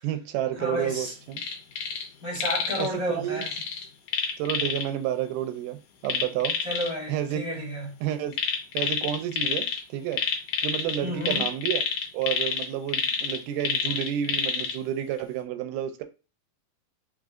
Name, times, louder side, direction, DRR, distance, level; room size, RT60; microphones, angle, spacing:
voice 1, 0.0-1.4 2.8-3.5 4.4-6.6 7.1-7.4 8.0-8.3 8.7-10.2 10.6-11.8 12.1-16.0, right 11 dB, 80° right, 2.1 m, -30 dB
voice 2, 0.5-1.1 2.2-3.5 6.6-7.9 11.0-11.4, equal, 15° left, 1.3 m, -31 dB
sound 1, 1.3-2.1 2.4-2.9 3.4-4.9 6.1-6.9 8.3-9.8 10.1-14.8 15.2-15.3, left 6 dB, 75° left, 2.3 m, -28 dB
5.1 x 3.7 x 2.4 m
omnidirectional pair, 3.8 m